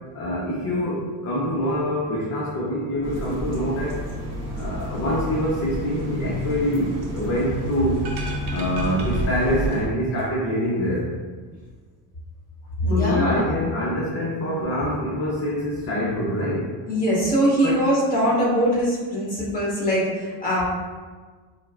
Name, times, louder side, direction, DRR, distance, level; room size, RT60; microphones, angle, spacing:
voice 1, 0.1-4.0 4.6-8.0 8.5-11.1 12.9-16.7 17.6-17.8, equal, 35° left, -6 dB, 0.6 m, -25 dB
sound 1, 3.0-9.8, equal, 35° right, 0.8 m, -30 dB
sound 2, 8.0-9.9 10.2-10.3, right 2 dB, 85° right, 0.8 m, -37 dB
voice 2, 12.8-13.5 16.9-20.6, equal, 20° left, -7 dB, 1.3 m, -22 dB
4.3 x 2.1 x 2.3 m, 1.5 s
cardioid pair, 115°, 47 cm